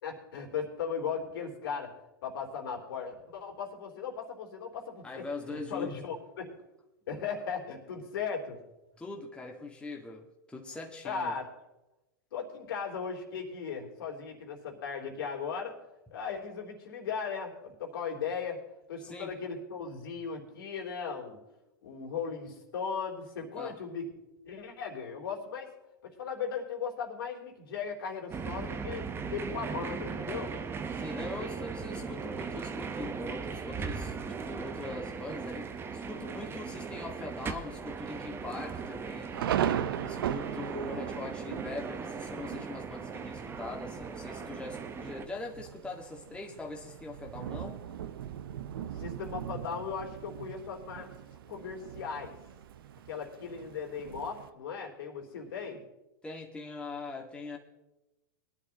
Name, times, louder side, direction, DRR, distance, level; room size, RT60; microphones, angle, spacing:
voice 1, 0.0-1.9 2.2-6.6 7.1-8.6 11.0-11.5 12.3-15.8 16.1-18.6 18.9-21.4 21.8-24.1 24.4-25.7 26.0-30.5 48.9-51.1 51.5-52.3 53.1-55.8, left 6 dB, 70° left, 0 dB, 3.6 m, -37 dB
voice 2, 5.0-5.9 9.0-11.3 19.0-19.3 23.5-23.8 30.9-39.7 40.0-47.8 56.2-57.6, left 3 dB, 10° left, 0 dB, 1.9 m, -42 dB
sound 1, 28.3-45.3, right 5 dB, 20° right, 1.1 m, -38 dB
Thunder, 35.2-35.7 36.3-36.4 36.7-37.1 37.4-37.5 38.2-54.5, right 10 dB, 75° right, 0.8 m, -39 dB
21.5 x 11.0 x 3.0 m, 0.99 s
hypercardioid pair, 115°, 12 cm